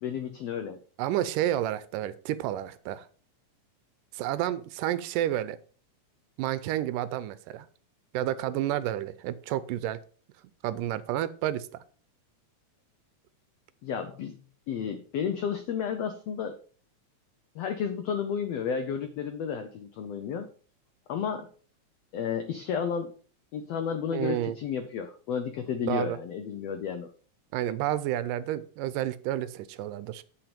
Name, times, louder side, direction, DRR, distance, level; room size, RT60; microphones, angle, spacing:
voice 1, 0.0-0.8 13.8-14.4 14.7-16.6 17.5-20.5 21.1-21.5 22.1-23.1 23.5-27.1, left 7 dB, 85° left, 8 dB, 1.4 m, -32 dB
voice 2, 1.0-3.1 4.1-5.6 6.4-7.7 8.1-10.0 10.6-11.8 24.1-24.6 25.9-26.2 27.5-30.2, right 12 dB, 85° right, 16 dB, 2.2 m, -30 dB
8.7 x 5.6 x 5.2 m, 0.42 s
omnidirectional pair, 3.8 m